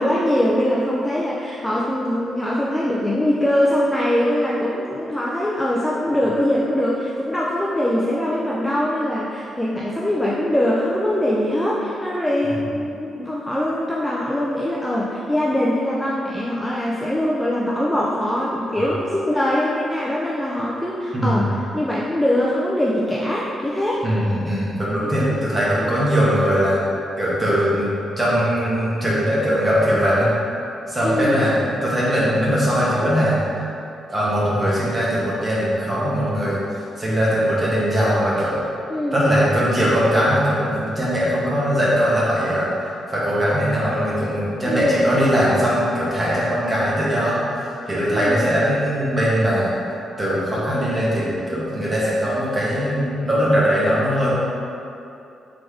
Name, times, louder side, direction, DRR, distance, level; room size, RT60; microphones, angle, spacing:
voice 1, 0.0-24.0 25.0-25.4 31.0-31.4 38.9-39.2 44.7-45.0 48.1-48.4, left 1 dB, 5° left, -5 dB, 0.3 m, -22 dB
voice 2, 21.1-21.5 24.0-26.8 27.2-30.3 30.9-33.4 34.1-36.6 37.0-38.6 39.1-42.7 43.1-49.7 50.2-54.3, equal, 20° right, -7 dB, 1.0 m, -20 dB
3.8 x 3.3 x 3.6 m, 2.7 s
cardioid pair, 140°, 0 cm